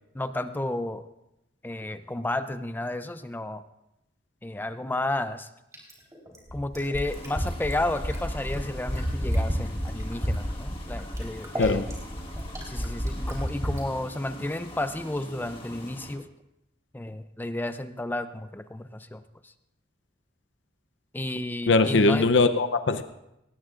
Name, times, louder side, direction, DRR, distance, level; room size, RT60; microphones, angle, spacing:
voice 1, 0.1-1.0 1.6-3.6 4.4-5.5 6.5-11.8 12.6-16.3 16.9-19.5 21.1-22.3, left 1 dB, 10° left, 10 dB, 0.5 m, -32 dB
Fill (with liquid), 5.7-13.8 15.2-15.3, equal, 15° right, 3.8 m, -30 dB
sound 1, 7.1-16.2, left 1 dB, 30° left, 1.5 m, -43 dB
voice 2, 21.7-23.0, left 3 dB, 75° left, 10 dB, 0.7 m, -21 dB
19.0 x 18.5 x 2.5 m, 0.87 s
head